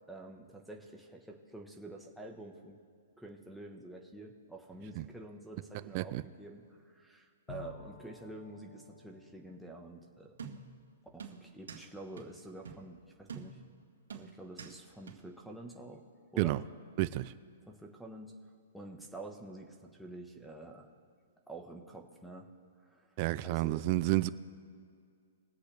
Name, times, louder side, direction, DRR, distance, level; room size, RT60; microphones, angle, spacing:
voice 1, 0.1-2.8 3.2-10.4 11.1-13.6 14.1-16.0 16.3-16.6 17.7-18.4 18.7-20.9 21.5-22.5 22.8-23.1 23.4-23.8, right 2 dB, ahead, 1.2 m, -48 dB
Bowed string instrument, 7.5-11.2, left 5 dB, 40° left, 1.6 m, -53 dB
sound 1, 10.4-10.8 11.2-11.9 12.2-12.3 12.6-12.9 13.3-13.7 14.1-14.8 15.1-15.2, right 6 dB, 85° right, 2.0 m, -46 dB
voice 2, 17.0-17.3 23.2-24.3, right 18 dB, 35° right, 0.4 m, -30 dB
22.5 x 8.1 x 3.4 m
hypercardioid pair, 150°, 0 cm